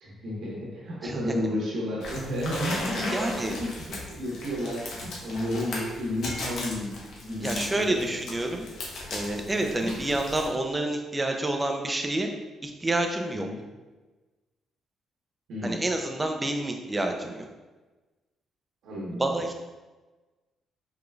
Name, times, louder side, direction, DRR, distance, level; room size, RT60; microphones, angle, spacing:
voice 1, 0.0-8.2 13.3-13.6 15.5-15.8 18.8-19.6, left 1 dB, 75° right, -5 dB, 1.4 m, -32 dB
sound 1, 2.0-10.5, left 2 dB, 75° left, 1.0 m, -37 dB
voice 2, 3.1-3.5 7.4-8.7 9.1-12.3 12.6-13.5 15.6-17.5 19.2-19.6, right 2 dB, 15° right, 4 dB, 0.6 m, -28 dB
4.8 x 3.7 x 2.4 m, 1.2 s
cardioid pair, 90°, 0 cm